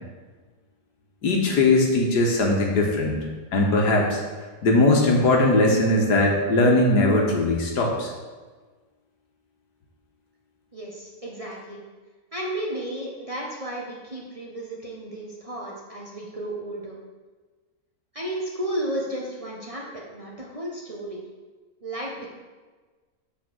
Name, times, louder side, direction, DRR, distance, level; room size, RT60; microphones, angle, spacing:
voice 1, 1.2-3.2 3.5-4.2 4.6-8.1, left 2 dB, 80° left, 0 dB, 1.9 m, -20 dB
voice 2, 10.7-11.8 12.3-16.9 18.1-21.2 21.8-22.3, right 1 dB, 25° right, -3 dB, 1.0 m, -33 dB
7.5 x 4.8 x 6.2 m, 1.4 s
omnidirectional pair, 1.7 m